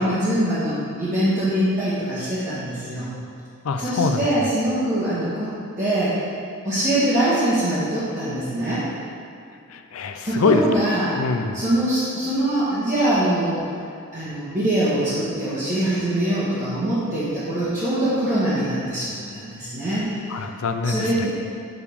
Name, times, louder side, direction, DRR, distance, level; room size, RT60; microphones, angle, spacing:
voice 1, 0.0-3.1 3.8-6.2 6.6-8.8 10.2-11.2 11.5-13.6 14.1-20.1 20.8-21.3, right 1 dB, 35° right, -13 dB, 1.4 m, -23 dB
voice 2, 3.6-4.2 9.7-10.6 11.2-11.6 20.3-21.3, left 4 dB, 75° left, 6 dB, 0.4 m, -23 dB
6.5 x 4.8 x 3.6 m, 2.4 s
head